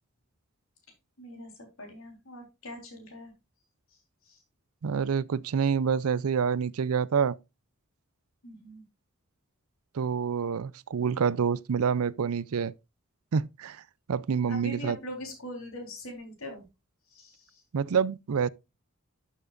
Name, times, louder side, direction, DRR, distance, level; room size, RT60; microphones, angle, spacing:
voice 1, 1.2-1.5 1.8-3.3 4.3-4.4 8.4-8.8 14.5-16.6 17.1-17.6, left 1 dB, 70° left, 3.9 m, -42 dB
voice 2, 4.8-7.4 9.9-12.7 13.3-13.8 14.1-15.0 17.7-18.5, right 6 dB, 80° right, 0.5 m, -27 dB
11.5 x 7.2 x 2.5 m
head